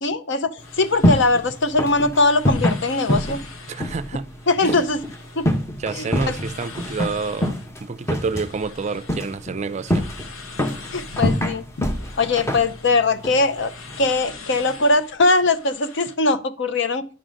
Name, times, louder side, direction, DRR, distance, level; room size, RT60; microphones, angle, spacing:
voice 1, 0.0-3.4 4.5-5.0 5.4-5.5 5.9-6.4 10.9-11.6 12.2-13.7 14.0-17.1, left 3 dB, 65° left, 0.7 m, -21 dB
sound 1, 0.6-16.2, left 4 dB, 90° left, 1.1 m, -43 dB
sound 2, 0.6-14.1, equal, 15° left, 0.8 m, -26 dB
voice 2, 3.7-4.3 4.6-4.8 5.8-10.1, right 4 dB, 35° right, 0.4 m, -29 dB
10.5 x 3.9 x 6.3 m
head